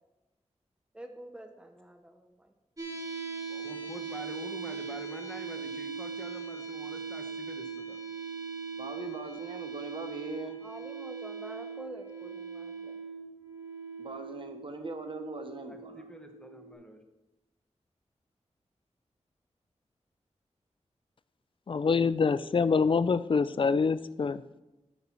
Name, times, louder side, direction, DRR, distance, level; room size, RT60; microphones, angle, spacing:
voice 1, 0.9-2.5 10.6-12.9, right 1 dB, 10° right, 5 dB, 0.7 m, -47 dB
sound 1, 2.8-16.7, right 5 dB, 30° right, 1.6 m, -40 dB
voice 2, 3.5-8.0 15.7-17.0, equal, 5° left, 5 dB, 1.1 m, -47 dB
voice 3, 8.8-10.6 14.0-16.0, right 2 dB, 45° right, 6 dB, 0.8 m, -41 dB
voice 4, 21.7-24.4, left 5 dB, 45° left, 16 dB, 0.4 m, -25 dB
9.7 x 6.7 x 4.4 m, 1.0 s
wide cardioid pair, 90°, 12 cm